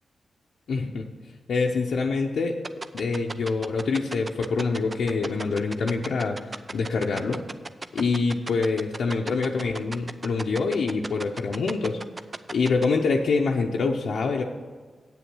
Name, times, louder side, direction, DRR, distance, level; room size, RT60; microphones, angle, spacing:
voice 1, 0.7-1.0 1.5-2.6 2.9-7.4 7.9-12.0 12.5-14.4, left 4 dB, 80° left, -1 dB, 0.6 m, -25 dB
sound 1, 2.6-12.9, right 3 dB, 40° right, 0.5 m, -34 dB
8.3 x 7.1 x 6.1 m, 1.5 s
cardioid pair, 45°, 0 cm